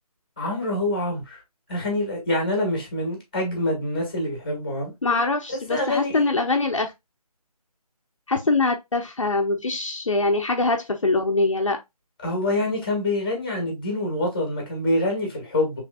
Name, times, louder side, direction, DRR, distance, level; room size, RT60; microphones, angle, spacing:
voice 1, 0.4-1.4 1.7-4.9 5.5-6.2 12.2-15.8, left 1 dB, 15° left, 1.2 m, -26 dB
voice 2, 5.0-6.9 8.3-11.8, left 3 dB, 50° left, 0.8 m, -23 dB
6.0 x 3.2 x 2.3 m
figure-of-eight pair, 175°, 20 cm